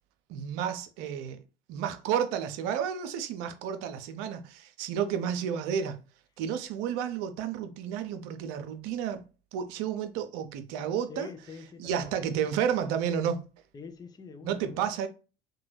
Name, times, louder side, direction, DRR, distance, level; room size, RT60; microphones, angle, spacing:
voice 1, 0.3-1.4 1.7-6.0 6.4-9.2 9.5-11.3 11.8-13.4 14.4-15.1, right 8 dB, 60° right, 0.6 m, -31 dB
voice 2, 11.1-12.1 13.7-14.9, left 5 dB, 15° left, 0.4 m, -45 dB
2.9 x 2.3 x 3.1 m
hypercardioid pair, 70°, 29 cm